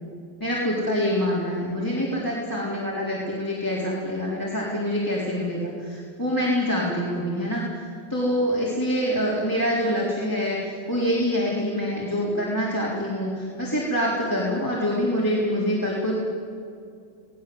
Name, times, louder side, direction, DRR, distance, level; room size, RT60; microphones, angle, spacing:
voice 1, 0.4-16.2, equal, 10° left, -6 dB, 3.7 m, -25 dB
28.0 x 19.5 x 7.8 m, 2.4 s
omnidirectional pair, 2.4 m